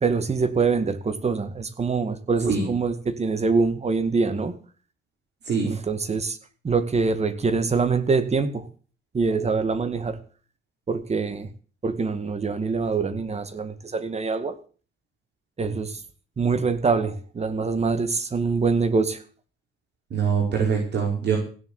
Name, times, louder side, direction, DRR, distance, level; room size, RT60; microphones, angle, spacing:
voice 1, 0.0-4.6 5.6-6.4 6.6-8.7 9.1-10.2 10.9-11.5 11.8-14.6 15.6-16.0 16.4-19.2, right 4 dB, 35° right, 12 dB, 2.0 m, -24 dB
voice 2, 20.1-21.4, right 6 dB, 60° right, -1 dB, 4.9 m, -23 dB
16.0 x 7.4 x 8.3 m, 0.39 s
cardioid pair, 90°, 20 cm